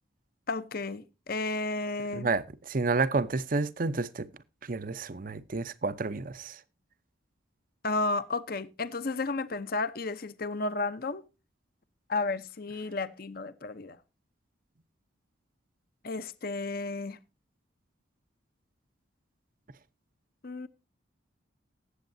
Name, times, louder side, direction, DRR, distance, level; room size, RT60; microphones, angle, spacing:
voice 1, 0.5-2.3 7.8-11.2 12.1-14.0 16.0-17.2 20.4-20.7, left 3 dB, 50° left, 0.7 m, -32 dB
voice 2, 2.1-4.3 4.6-6.6, right 3 dB, 45° right, 0.7 m, -30 dB
19.5 x 8.1 x 2.6 m
head